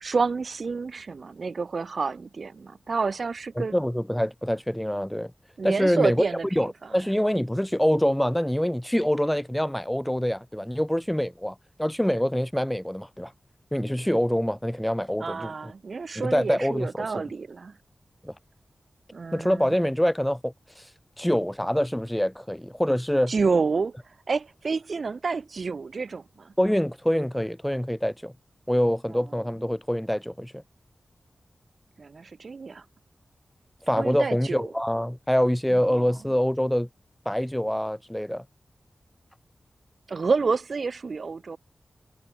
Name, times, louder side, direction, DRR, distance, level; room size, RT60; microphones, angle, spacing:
voice 1, 0.0-3.7 5.6-6.7 15.2-17.8 19.1-19.8 23.3-23.9 24.3-26.5 29.1-29.2 32.0-32.8 34.0-34.7 35.8-36.1 40.1-41.6, right 4 dB, 60° right, 1.8 m, -29 dB
voice 2, 3.6-5.3 5.6-6.2 6.5-13.3 13.7-15.7 16.2-17.2 18.2-18.3 19.3-20.8 21.2-23.3 26.6-28.3 28.7-30.6 33.9-36.9 37.3-38.4, equal, 5° left, 0.5 m, -25 dB
wide cardioid pair, 95°, 0 cm